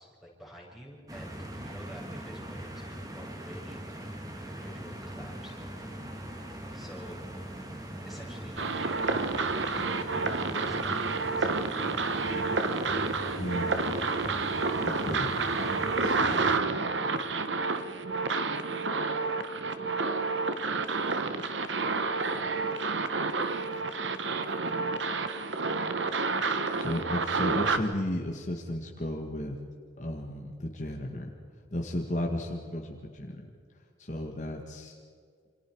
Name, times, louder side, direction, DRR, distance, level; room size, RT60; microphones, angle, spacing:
voice 1, 0.0-4.1 4.4-5.5 6.7-7.2 8.1-11.8, equal, ahead, -3 dB, 6.4 m, -50 dB
sound 1, 1.1-16.6, right 1 dB, 20° right, 2.5 m, -40 dB
sound 2, 8.6-27.8, right 4 dB, 85° right, 1.5 m, -29 dB
voice 2, 13.4-13.7 14.8-15.3 16.0-16.6 17.1-17.2 26.8-29.6 30.0-31.3 31.7-33.5 34.0-34.9, left 1 dB, 40° left, 1 dB, 2.0 m, -34 dB
28.5 x 27.5 x 4.8 m, 2.2 s
head